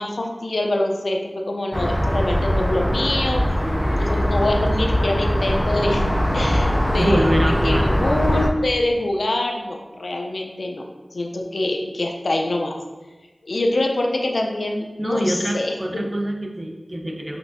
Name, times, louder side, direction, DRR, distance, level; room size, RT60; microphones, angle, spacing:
voice 1, 0.0-3.4 3.9-6.1 6.3-7.3 7.6-10.9 11.1-12.8 13.4-16.1, left 1 dB, 80° left, 2 dB, 0.5 m, -24 dB
sound 1, 1.7-8.5, equal, 5° left, 0.4 m, -21 dB
voice 2, 7.0-8.0 15.0-17.4, right 1 dB, 40° right, 2 dB, 0.6 m, -24 dB
5.9 x 3.4 x 2.6 m, 1.2 s
wide cardioid pair, 60°, 0 cm